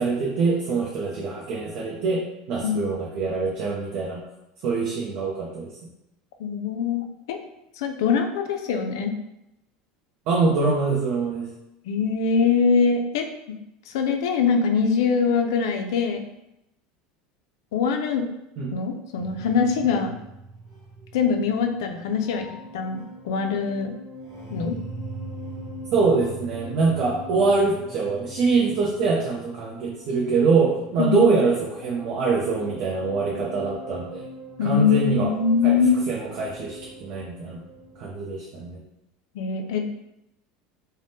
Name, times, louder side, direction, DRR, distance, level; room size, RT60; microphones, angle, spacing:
voice 1, 0.0-4.2 4.6-5.7 10.3-11.5 18.6-18.7 25.9-34.2 34.6-35.3 35.6-35.8 36.1-37.6 38.0-38.8, right 4 dB, 55° right, -3 dB, 0.5 m, -24 dB
voice 2, 6.4-7.4 7.8-9.1 11.8-13.3 13.9-16.2 17.7-18.3 18.7-20.2 21.1-22.5 22.7-23.9 24.5-24.8 31.0-31.4 34.6-36.0 39.3-39.9, left 6 dB, 90° left, 5 dB, 0.4 m, -23 dB
sound 1, 19.2-38.0, right 1 dB, 30° right, 1.0 m, -41 dB
3.4 x 2.1 x 2.6 m, 0.89 s
supercardioid pair, 150°, 2 cm